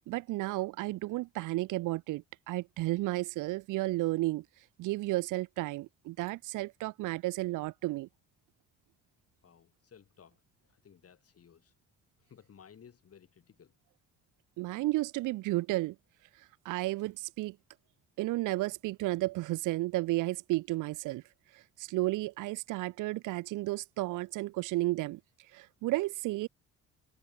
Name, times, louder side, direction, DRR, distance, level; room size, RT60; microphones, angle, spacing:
voice 1, 0.0-4.4 4.8-8.1 14.6-16.0 16.4-17.6 18.2-21.2 21.5-25.2 25.5-26.5, right 19 dB, 90° right, 0.6 m, -33 dB
voice 2, 9.4-11.7 12.2-13.7, left 7 dB, 50° left, 5.3 m, -58 dB
cardioid pair, 90°, 30 cm